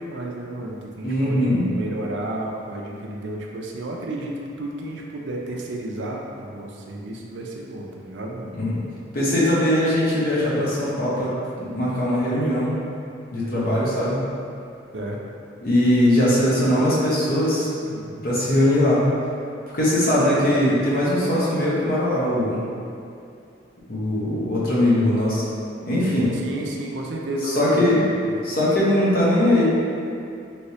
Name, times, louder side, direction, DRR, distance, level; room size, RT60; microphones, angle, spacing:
voice 1, 0.0-8.5 13.4-13.9 14.9-15.4 17.9-18.2 26.4-28.4, right 1 dB, 65° right, -1 dB, 0.4 m, -32 dB
voice 2, 1.0-1.6 8.5-8.8 9.1-11.3 11.6-12.9 13.3-14.2 15.6-18.0 18.2-19.0 19.7-22.6 23.9-25.4 25.8-26.3 27.4-28.0 28.4-29.7, left 1 dB, 50° left, -7 dB, 0.8 m, -20 dB
3.1 x 3.0 x 2.8 m, 2.5 s
head